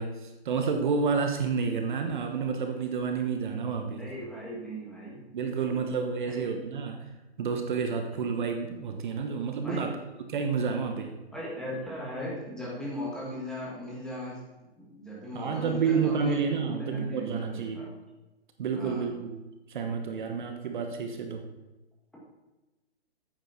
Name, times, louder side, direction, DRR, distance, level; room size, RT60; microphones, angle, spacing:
voice 1, 0.0-4.1 5.3-7.1 7.4-9.9 10.3-11.1 15.3-17.9 18.6-19.4 19.7-21.5, right 5 dB, 45° right, 5 dB, 1.1 m, -30 dB
voice 2, 3.8-5.2 6.3-6.5 9.6-9.9 11.3-17.9 18.8-19.1, equal, ahead, -5 dB, 1.7 m, -38 dB
8.9 x 7.2 x 5.8 m, 1.1 s
hypercardioid pair, 155°, 33 cm